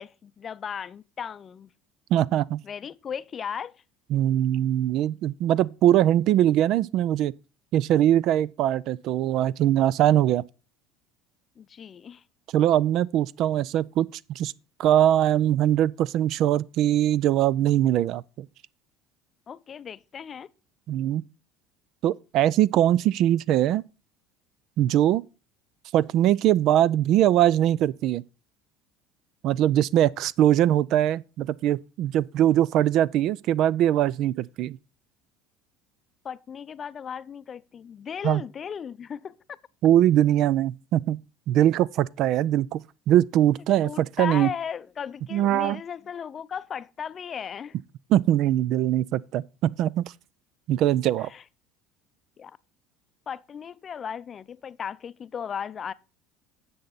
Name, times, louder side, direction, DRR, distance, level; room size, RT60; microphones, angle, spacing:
voice 1, 0.0-1.7 2.6-3.8 11.6-12.2 19.5-20.5 36.2-39.6 43.8-47.8 51.2-51.4 52.4-52.6 53.3-55.9, left 7 dB, 40° left, 0.5 m, -36 dB
voice 2, 2.1-2.6 4.1-7.3 7.7-10.4 12.5-14.5 14.8-18.5 20.9-21.2 22.0-23.8 24.8-25.2 25.9-28.2 29.4-34.8 38.2-38.4 39.8-41.2 41.5-44.5 45.3-45.8 48.1-50.0 50.7-51.3, right 12 dB, 60° right, 0.3 m, -22 dB
10.0 x 7.0 x 4.0 m
supercardioid pair, 85°, 0 cm